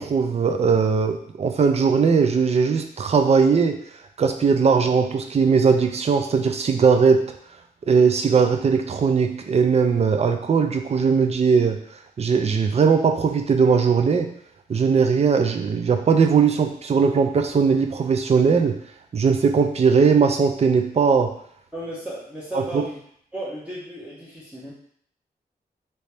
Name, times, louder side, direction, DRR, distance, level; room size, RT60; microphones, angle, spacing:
voice 1, 0.0-3.8 4.2-7.3 7.9-11.8 12.2-14.3 14.7-18.8 19.1-21.4 22.5-22.8, right 5 dB, 40° right, 5 dB, 0.4 m, -19 dB
voice 2, 21.7-23.0 23.3-24.7, right 1 dB, 10° right, -9 dB, 0.9 m, -34 dB
3.1 x 2.7 x 3.3 m, 0.64 s
wide cardioid pair, 115°, 16 cm